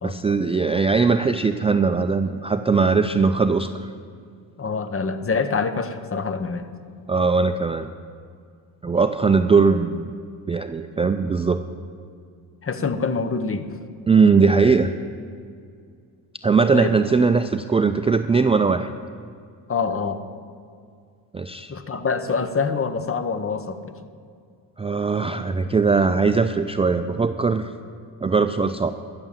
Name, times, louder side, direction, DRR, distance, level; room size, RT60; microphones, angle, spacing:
voice 1, 0.0-3.9 7.1-7.9 8.8-10.2 10.5-11.6 14.1-14.9 16.4-18.9 21.3-21.7 24.8-27.7 28.2-28.9, right 4 dB, 15° right, 9 dB, 0.4 m, -20 dB
voice 2, 4.6-6.7 12.6-13.7 16.7-16.9 19.7-20.2 21.7-23.9, left 5 dB, 30° left, 11 dB, 1.0 m, -25 dB
13.0 x 6.9 x 7.4 m, 2.2 s
supercardioid pair, 65°, 45 cm